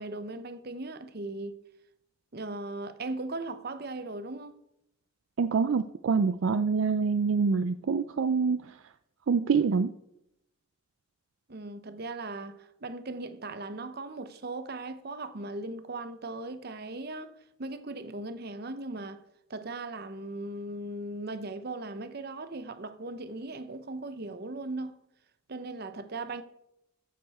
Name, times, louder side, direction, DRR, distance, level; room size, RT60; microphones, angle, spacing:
voice 1, 0.0-1.6 2.3-4.5 11.5-19.2 19.5-25.0 25.5-26.4, right 2 dB, 50° right, 0.8 m, -38 dB
voice 2, 5.4-8.8 9.3-9.9, right 5 dB, 65° right, 0.4 m, -26 dB
14.5 x 6.7 x 4.3 m
head